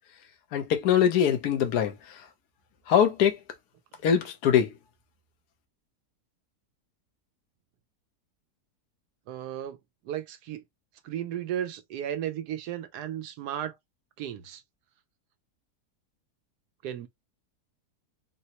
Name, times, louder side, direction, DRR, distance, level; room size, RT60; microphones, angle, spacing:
voice 1, 0.5-2.2 2.9-3.4 4.0-4.7, left 8 dB, 80° left, 1.3 m, -23 dB
voice 2, 9.3-9.8 10.0-10.6 11.0-13.8 14.2-14.6 16.8-17.1, right 10 dB, 90° right, 1.2 m, -34 dB
3.9 x 2.0 x 2.8 m
omnidirectional pair, 1.7 m